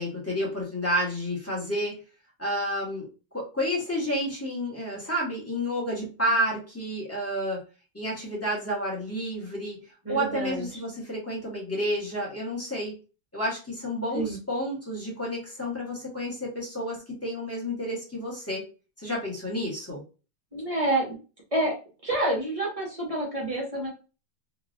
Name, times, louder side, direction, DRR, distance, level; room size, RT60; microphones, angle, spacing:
voice 1, 0.0-1.9 2.4-3.1 3.3-7.6 7.9-9.8 10.1-12.9 13.3-18.6 19.0-20.0, equal, 10° left, -5 dB, 0.7 m, -30 dB
voice 2, 10.1-10.7 14.1-14.4 20.5-21.1 21.5-21.7 22.0-23.9, right 1 dB, 30° right, -3 dB, 0.7 m, -28 dB
3.0 x 2.5 x 2.5 m, 0.34 s
omnidirectional pair, 1.9 m